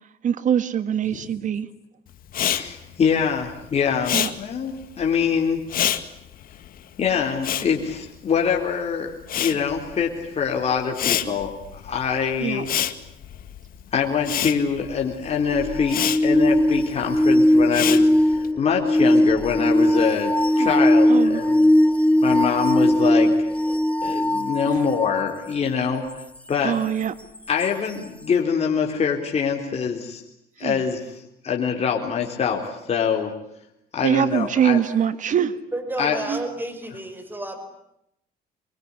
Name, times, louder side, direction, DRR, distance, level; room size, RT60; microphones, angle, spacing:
voice 1, 0.2-1.7 4.1-4.3 9.5-9.6 11.2-11.4 12.4-12.7 20.6-20.7 21.1-21.4 24.6-24.8 26.6-27.1 30.6-30.8 34.0-35.5 36.3-36.4, right 8 dB, 50° right, 11 dB, 1.8 m, -23 dB
Respiratory sounds, 2.3-8.7 9.0-18.5, left 11 dB, 60° left, 1.9 m, -28 dB
voice 2, 2.4-5.6 7.0-12.7 13.9-21.7 22.2-23.3 24.0-26.1 26.5-26.8 27.5-30.2 30.6-31.0 31.4-33.3 33.9-34.8 36.0-36.2, left 6 dB, 40° left, 1 dB, 4.1 m, -24 dB
sound 1, 15.5-25.3 27.6-27.7, left 1 dB, 10° left, 1.3 m, -19 dB
voice 3, 35.7-37.6, right 1 dB, 10° right, 7 dB, 5.2 m, -31 dB
25.5 x 23.0 x 9.9 m, 0.79 s
cardioid pair, 110°, 17 cm